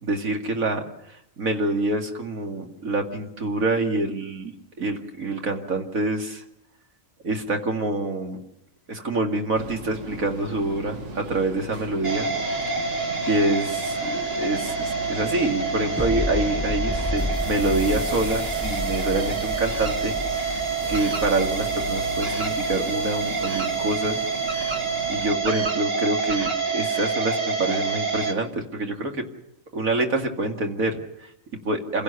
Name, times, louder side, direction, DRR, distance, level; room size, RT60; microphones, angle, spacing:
voice 1, 0.0-0.8 1.1-6.4 7.2-8.4 8.9-12.3 12.7-12.8 13.3-24.2 25.1-29.2 29.7-32.0, right 2 dB, 90° right, 3 dB, 2.6 m, -26 dB
sound 1, 9.5-25.3, right 1 dB, 60° right, 1.7 m, -38 dB
sound 2, 12.0-28.3, right 4 dB, 45° right, 2.3 m, -27 dB
sound 3, 16.0-23.5, left 2 dB, 5° left, 0.6 m, -32 dB
27.0 x 17.0 x 6.9 m, 0.82 s
omnidirectional pair, 1.4 m